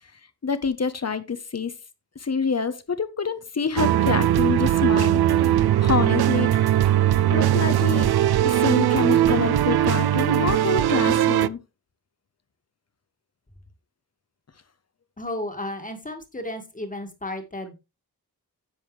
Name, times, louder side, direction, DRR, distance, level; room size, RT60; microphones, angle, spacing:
voice 1, 0.4-1.7 2.2-5.5 5.8-6.6 7.3-8.1 8.4-11.6, left 5 dB, 40° left, 1.0 m, -27 dB
sound 1, 3.8-11.5, right 11 dB, 75° right, 0.5 m, -20 dB
voice 2, 15.2-17.7, left 1 dB, 20° left, 1.9 m, -33 dB
10.5 x 7.8 x 3.3 m
wide cardioid pair, 140°, 38 cm